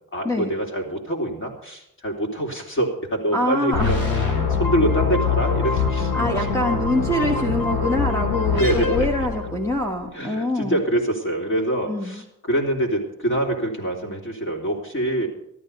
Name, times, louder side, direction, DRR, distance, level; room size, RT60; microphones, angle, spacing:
voice 1, 0.1-6.6 8.5-9.1 10.1-15.3, right 1 dB, 35° left, 1 dB, 3.6 m, -25 dB
voice 2, 3.3-3.9 5.7-5.8 6.1-10.8 11.9-12.2, left 1 dB, 10° left, 1 dB, 1.4 m, -24 dB
sound 1, 3.7-9.9, left 5 dB, 80° left, 3.4 m, -23 dB
14.0 x 12.5 x 5.3 m, 0.78 s
wide cardioid pair, 140°, 35 cm